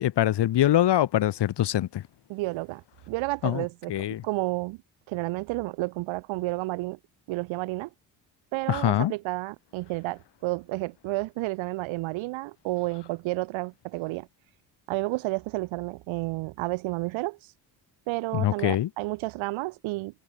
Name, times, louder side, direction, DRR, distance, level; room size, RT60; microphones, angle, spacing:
voice 1, 0.0-2.0 3.4-4.2 8.7-9.1 18.3-18.9, left 12 dB, 60° left, 2.3 m, -24 dB
voice 2, 2.3-4.8 5.1-7.0 7.3-7.9 8.5-14.3 14.9-17.4 18.1-20.2, right 21 dB, 80° right, 5.6 m, -31 dB
supercardioid pair, 65°, 46 cm